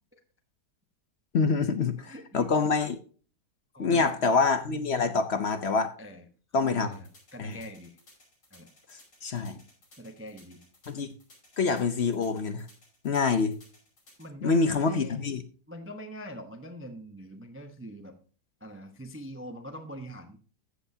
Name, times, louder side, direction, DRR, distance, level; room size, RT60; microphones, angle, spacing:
voice 1, 1.3-3.0 3.8-5.9 6.5-6.9 7.4-7.6 8.9-9.6 10.9-11.1 11.6-12.7 13.0-13.5 14.4-15.4, left 4 dB, 55° left, 0.8 m, -26 dB
voice 2, 2.1-2.5 3.7-4.4 6.0-6.2 6.5-8.0 8.5-8.7 10.0-10.6 14.2-15.2 15.7-18.2 18.6-20.4, equal, 10° right, 0.7 m, -43 dB
sound 1, 6.9-14.3, left 1 dB, 85° left, 6.2 m, -58 dB
14.0 x 7.9 x 2.8 m
omnidirectional pair, 1.9 m